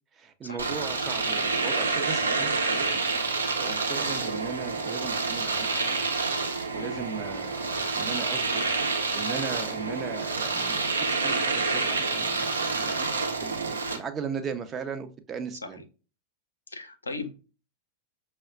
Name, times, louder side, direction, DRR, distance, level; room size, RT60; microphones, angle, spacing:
voice 1, 0.1-3.0 3.5-5.8 6.3-7.7 7.9-8.7 8.9-15.8, right 6 dB, 25° right, 0.6 m, -38 dB
Domestic sounds home sounds, 0.6-14.0, right 3 dB, 75° right, 0.8 m, -28 dB
voice 2, 16.7-17.4, left 3 dB, 80° left, 0.6 m, -38 dB
6.1 x 2.1 x 2.3 m
figure-of-eight pair, 90°, 0 cm